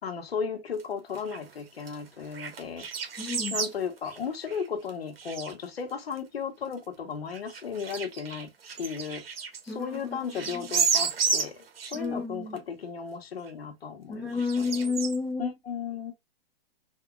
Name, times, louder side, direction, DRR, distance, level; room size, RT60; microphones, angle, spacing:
voice 1, 0.0-2.8 3.5-8.5 8.8-9.2 9.6-11.5 11.9-14.9 15.4-16.1, left 6 dB, 85° left, 1.5 m, -35 dB
sound 1, 0.8-0.9 1.1-1.5 1.8-3.7 4.0-4.9 5.2-5.5 6.1-6.2 6.7-6.8 7.3-10.0 10.3-12.0 12.6-12.7 13.5-13.6 14.4-15.2, right 5 dB, 75° right, 1.4 m, -31 dB
voice 2, 3.2-3.5 9.7-9.9 11.9-12.6 14.1-15.5, left 4 dB, 5° left, 1.2 m, -30 dB
4.3 x 2.9 x 2.3 m
hypercardioid pair, 140°, 30 cm